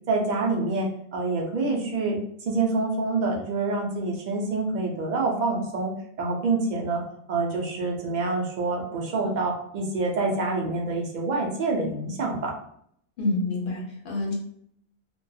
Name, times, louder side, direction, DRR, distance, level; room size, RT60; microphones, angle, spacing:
voice 1, 0.1-2.2 2.5-5.9 6.2-7.0 7.3-12.5, right 3 dB, 55° right, 0 dB, 0.6 m, -26 dB
voice 2, 13.2-14.3, left 2 dB, 60° left, -1 dB, 0.8 m, -27 dB
2.3 x 2.2 x 2.6 m, 0.68 s
omnidirectional pair, 1.1 m